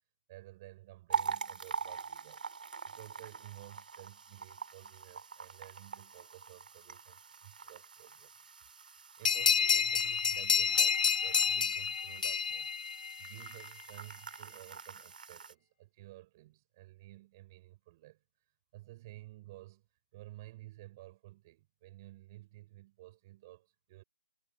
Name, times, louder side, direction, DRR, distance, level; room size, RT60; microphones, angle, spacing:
voice 1, 0.3-2.4 2.8-8.3 8.7-8.9 9.2-12.7 13.2-18.2 18.7-19.8 20.1-24.0, right 17 dB, 25° right, 6.2 m, -53 dB
sound 1, 1.1-15.5, right 5 dB, 60° right, 2.4 m, -44 dB
sound 2, 9.2-13.5, left 6 dB, 50° left, 0.4 m, -29 dB
hypercardioid pair, 165°, 5 cm